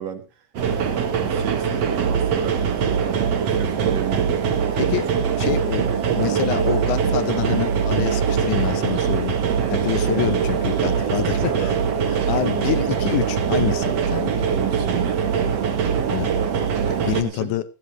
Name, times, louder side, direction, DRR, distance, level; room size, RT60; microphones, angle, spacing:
voice 1, 0.0-2.6 2.9-4.8 11.2-11.8 14.5-15.3 17.1-17.6, right 9 dB, 70° right, 5 dB, 3.2 m, -34 dB
sound 1, 0.6-17.2, right 7 dB, 55° right, 2.2 m, -22 dB
voice 2, 1.0-1.4 4.8-5.1 5.4-9.4 9.7-11.7 12.1-14.5 16.1-16.3 16.9-17.6, left 14 dB, 75° left, 14 dB, 2.0 m, -27 dB
15.5 x 14.5 x 3.0 m, 0.28 s
omnidirectional pair, 4.1 m